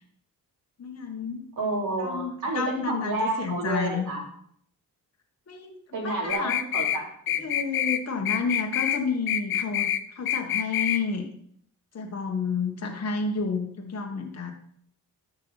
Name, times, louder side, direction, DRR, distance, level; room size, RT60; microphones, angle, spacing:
voice 1, 0.8-1.5 2.0-4.1 5.5-5.7 6.0-6.6 7.4-11.3 11.9-14.5, left 5 dB, 45° left, 3 dB, 1.5 m, -30 dB
voice 2, 1.6-4.2 5.9-7.4, right 2 dB, 60° right, -3 dB, 3.7 m, -30 dB
sound 1, 6.3-7.0 7.3-8.0 8.3-9.0 9.3-10.0 10.3-11.0, left 11 dB, 80° left, 0.7 m, -26 dB
13.0 x 5.7 x 4.1 m, 0.63 s
cardioid pair, 105°, 36 cm